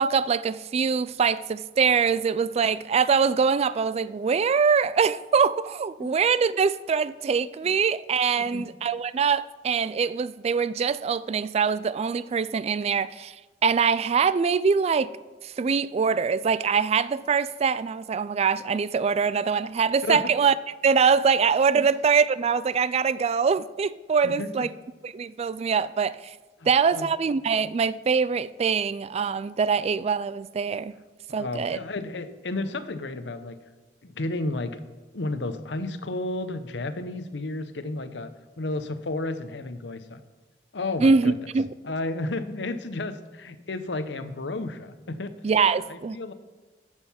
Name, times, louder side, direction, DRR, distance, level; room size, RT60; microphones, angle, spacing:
voice 1, 0.0-13.3 13.6-15.1 15.4-20.5 20.8-24.7 25.1-26.3 26.7-30.9 31.3-31.8 41.0-41.7 45.4-46.2, right 5 dB, 35° right, 0.3 m, -23 dB
voice 2, 8.4-8.7 20.0-20.2 21.8-21.9 24.2-24.7 26.6-27.1 31.3-33.6 34.0-34.8 35.1-40.2 40.7-41.4 41.8-45.3 45.7-46.3, left 2 dB, 70° left, 0.8 m, -32 dB
14.5 x 6.5 x 5.7 m
head